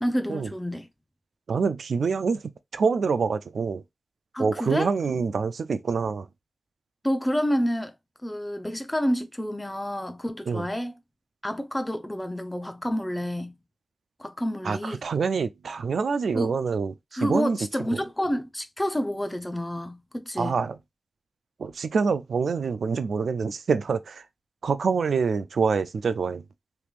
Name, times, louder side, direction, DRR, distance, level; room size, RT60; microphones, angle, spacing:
voice 1, 0.0-0.9 4.3-5.2 7.0-7.9 8.2-10.9 11.4-13.5 14.2-15.0 16.3-16.5 17.1-20.6, equal, 15° left, 0.6 m, -29 dB
voice 2, 1.5-3.8 4.4-6.3 10.5-10.7 14.6-18.0 20.4-20.8 21.6-24.2 24.6-26.4, right 5 dB, 90° right, 0.4 m, -26 dB
3.5 x 3.0 x 2.5 m
wide cardioid pair, 65°, 0 cm